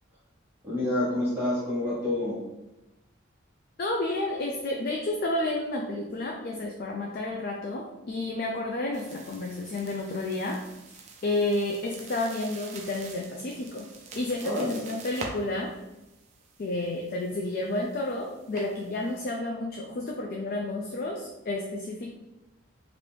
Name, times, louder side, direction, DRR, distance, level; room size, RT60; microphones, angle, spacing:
voice 1, 0.6-2.4 14.4-14.8, left 1 dB, 10° right, -10 dB, 1.2 m, -28 dB
voice 2, 3.8-10.6 11.2-13.9 14.2-15.7 16.6-22.1, left 2 dB, 45° left, 1 dB, 0.3 m, -31 dB
sound 1, 8.9-19.2, right 3 dB, 35° right, 0.4 m, -46 dB
3.2 x 2.5 x 3.0 m, 0.99 s
head